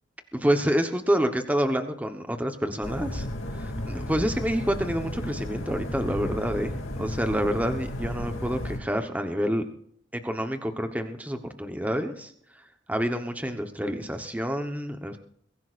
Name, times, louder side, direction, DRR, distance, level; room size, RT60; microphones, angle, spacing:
voice 1, 0.3-3.3 3.5-9.6 10.2-12.3 12.9-15.2, equal, 10° right, 6 dB, 1.0 m, -28 dB
sound 1, 2.8-8.8, left 1 dB, 90° left, 2.5 m, -33 dB
22.5 x 15.5 x 2.5 m, 0.62 s
head